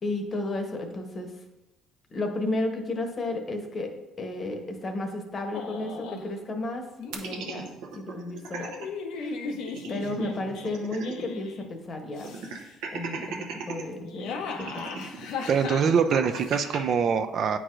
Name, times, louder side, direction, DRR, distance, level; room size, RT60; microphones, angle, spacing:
voice 1, 0.0-1.3 2.1-6.9 7.1-8.7 9.1-9.5 9.9-12.4 12.9-15.0, left 2 dB, 35° left, 4 dB, 0.9 m, -33 dB
sound 1, 5.5-6.3 7.0-7.6 8.5-11.7 12.1-12.7 13.9-16.6, left 5 dB, 80° left, 0.7 m, -37 dB
sound 2, 7.1-8.9 9.2-9.3 9.6-11.4 11.6-11.7 12.2-13.8 14.5-16.8, right 5 dB, 90° right, 0.8 m, -37 dB
voice 2, 15.5-17.6, right 6 dB, 55° right, 8 dB, 0.4 m, -24 dB
8.6 x 4.6 x 2.5 m, 1.0 s
cardioid pair, 105°, 0 cm